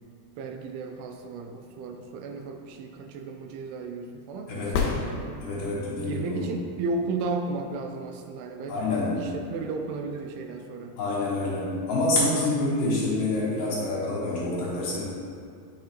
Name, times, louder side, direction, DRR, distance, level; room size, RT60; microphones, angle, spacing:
voice 1, 0.4-5.5 6.0-11.0, right 3 dB, 85° right, 4 dB, 2.5 m, -34 dB
voice 2, 4.5-4.8 5.4-6.5 8.7-9.3 11.0-15.1, left 2 dB, 65° left, -8 dB, 2.5 m, -27 dB
sound 1, 4.7-5.9 9.7-9.8, left 5 dB, 90° left, 2.8 m, -29 dB
8.9 x 5.4 x 2.9 m, 2.4 s
omnidirectional pair, 4.7 m